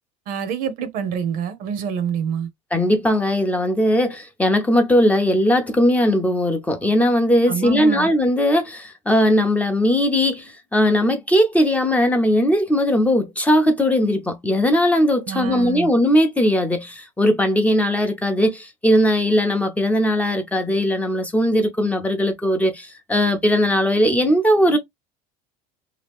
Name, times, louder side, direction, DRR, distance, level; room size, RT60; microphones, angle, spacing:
voice 1, 0.3-2.5 7.5-8.1 15.3-15.9, right 7 dB, 60° right, 0.8 m, -26 dB
voice 2, 2.7-24.8, equal, 10° left, 0.6 m, -19 dB
2.8 x 2.3 x 3.4 m
supercardioid pair, 120°, 17 cm